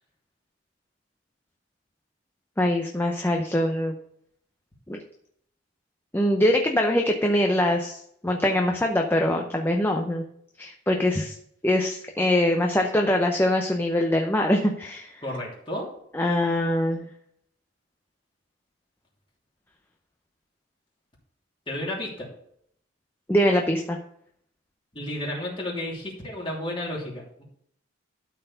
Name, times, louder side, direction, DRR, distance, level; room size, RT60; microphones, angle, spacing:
voice 1, 2.6-3.9 4.9-5.0 6.1-10.3 10.6-11.4 11.6-15.1 16.1-17.1 23.3-24.0, left 1 dB, 10° left, 2 dB, 0.7 m, -23 dB
voice 2, 15.2-15.9 21.7-22.3 24.9-27.4, left 1 dB, 25° left, -3 dB, 3.0 m, -32 dB
12.5 x 4.6 x 5.6 m, 0.69 s
head